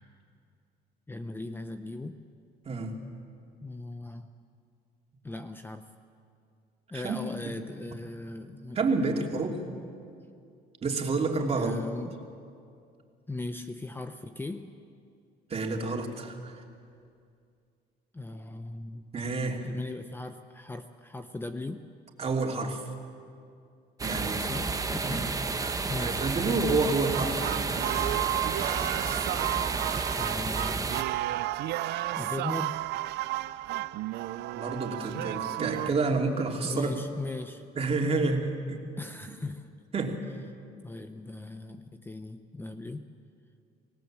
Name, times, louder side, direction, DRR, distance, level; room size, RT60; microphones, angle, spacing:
voice 1, 1.1-2.2 3.6-4.3 5.2-5.9 6.9-8.8 9.1-9.3 11.5-12.3 13.3-14.7 18.1-19.1 19.6-21.9 24.1-25.4 25.9-26.3 30.1-31.0 32.2-32.9 36.6-37.7 39.0-39.7 40.8-43.1, left 2 dB, 10° left, 8 dB, 0.8 m, -38 dB
voice 2, 2.6-3.0 6.9-7.2 7.4-7.5 8.7-9.6 10.8-11.8 15.5-16.6 19.1-19.7 22.2-22.9 24.0-24.4 25.0-25.2 25.6-28.0 34.5-36.9 37.7-38.8 39.9-40.2, right 3 dB, 35° right, 1 dB, 2.8 m, -29 dB
sound 1, 24.0-31.0, right 4 dB, 20° right, 1.1 m, -31 dB
sound 2, 27.1-35.9, right 16 dB, 80° right, 0.5 m, -32 dB
25.5 x 18.5 x 7.6 m, 2.4 s
cardioid pair, 110°, 17 cm